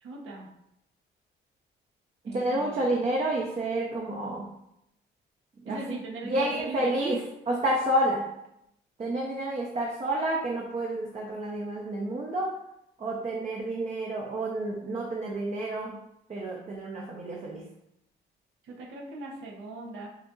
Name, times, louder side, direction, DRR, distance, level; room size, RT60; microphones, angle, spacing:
voice 1, 0.0-0.5 2.2-2.8 5.6-7.1 18.6-20.1, right 3 dB, 80° right, -2 dB, 1.1 m, -38 dB
voice 2, 2.2-4.5 5.6-5.8 6.2-7.2 7.5-8.3 9.0-12.5 13.0-16.0 16.3-17.6, right 1 dB, 35° right, -3 dB, 0.8 m, -29 dB
6.4 x 2.8 x 2.4 m, 0.81 s
cardioid pair, 90°, 20 cm